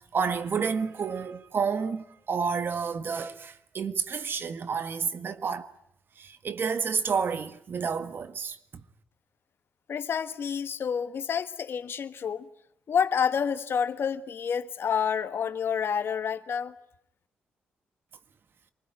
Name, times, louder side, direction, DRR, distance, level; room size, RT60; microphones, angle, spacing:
voice 1, 0.0-5.7 6.2-8.8, right 6 dB, 55° right, 1.6 m, -30 dB
voice 2, 9.9-12.5 12.9-16.7, left 7 dB, 60° left, 1.4 m, -29 dB
26.5 x 20.0 x 10.0 m
supercardioid pair, 50°, 4 cm